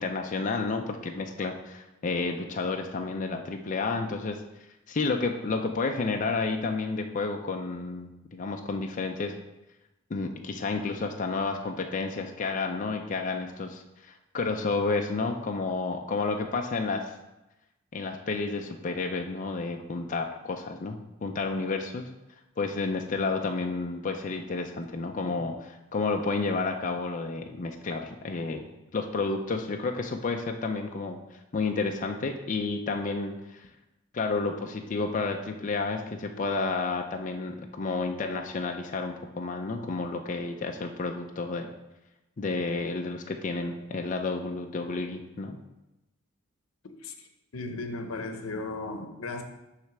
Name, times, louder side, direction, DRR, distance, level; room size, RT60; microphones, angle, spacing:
voice 1, 0.0-4.4 4.9-9.3 10.1-17.1 17.9-22.1 22.6-25.5 25.9-31.2 31.5-33.6 34.1-41.7 42.4-45.6, left 3 dB, 40° left, 3 dB, 0.5 m, -31 dB
voice 2, 46.8-47.3 47.5-49.4, left 3 dB, 90° left, 6 dB, 0.7 m, -36 dB
6.3 x 3.3 x 5.9 m, 0.97 s
head